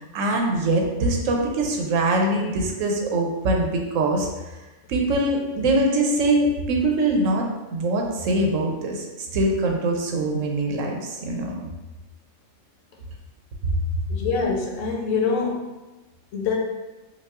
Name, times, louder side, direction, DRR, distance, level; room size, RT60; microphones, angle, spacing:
voice 1, 0.0-4.3 4.9-11.7, right 2 dB, 90° right, 1 dB, 1.0 m, -23 dB
voice 2, 14.1-15.8 16.3-16.6, left 4 dB, 85° left, 0 dB, 1.0 m, -25 dB
4.9 x 2.3 x 2.3 m, 1.1 s
omnidirectional pair, 1.3 m